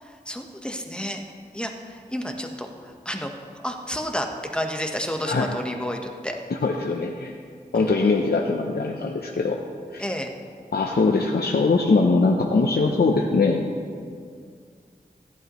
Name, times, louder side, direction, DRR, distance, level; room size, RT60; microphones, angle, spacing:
voice 1, 0.3-1.2 1.5-3.3 3.6-4.3 4.5-6.3 7.7-7.9 10.0-10.3, equal, 5° left, 3 dB, 1.2 m, -30 dB
voice 2, 5.3-5.6 6.5-7.3 7.7-9.6 9.9-10.0 10.7-13.7, left 3 dB, 75° left, 1 dB, 0.7 m, -22 dB
15.0 x 11.0 x 3.1 m, 2.2 s
wide cardioid pair, 40°, 17 cm